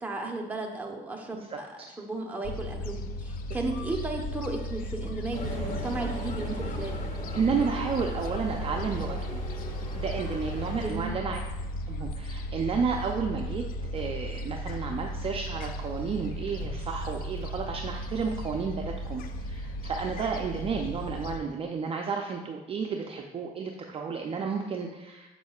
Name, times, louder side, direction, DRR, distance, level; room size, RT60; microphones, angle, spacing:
voice 1, 0.0-7.0 10.8-11.2, right 2 dB, 10° right, 0 dB, 0.9 m, -35 dB
voice 2, 1.3-2.0 7.3-9.4 9.9-11.4 11.9-13.6 13.9-25.3, right 5 dB, 35° right, 2 dB, 0.5 m, -32 dB
Gull seagull, 2.4-21.4, equal, 60° left, 0.5 m, -35 dB
sound 1, 5.3-10.9, equal, 40° left, 1.6 m, -39 dB
7.2 x 6.1 x 2.4 m, 1.0 s
cardioid pair, 110°, 17 cm